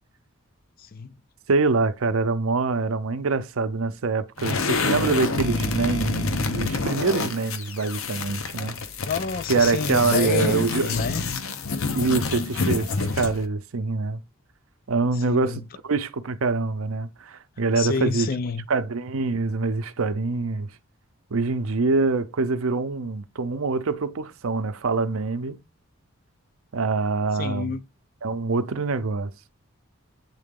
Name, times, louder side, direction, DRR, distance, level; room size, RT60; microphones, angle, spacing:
voice 1, 0.8-1.2 8.6-8.7 9.0-11.2 15.2-15.6 17.8-18.7 27.4-27.8, left 5 dB, 45° left, 0.4 m, -29 dB
voice 2, 1.5-8.8 9.5-11.0 11.9-14.2 14.9-18.3 18.7-20.7 21.3-25.6 26.7-27.7 28.2-29.3, right 3 dB, 70° right, 0.6 m, -25 dB
sound 1, 4.4-13.5, left 3 dB, 70° left, 0.8 m, -28 dB
8.2 x 3.9 x 3.7 m
head